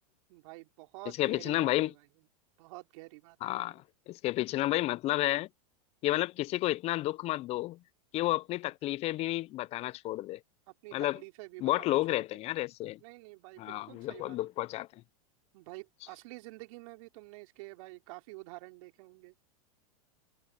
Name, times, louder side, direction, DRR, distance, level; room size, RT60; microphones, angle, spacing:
voice 1, 0.3-1.9 2.6-3.8 10.7-12.2 13.0-14.4 15.5-19.3, right 24 dB, 60° right, 3.8 m, -49 dB
voice 2, 1.2-1.9 3.4-5.5 6.0-7.8 8.1-10.4 10.9-11.2 11.6-13.0 13.6-14.9, left 17 dB, 30° left, 0.5 m, -31 dB
hypercardioid pair, 120°, 20 cm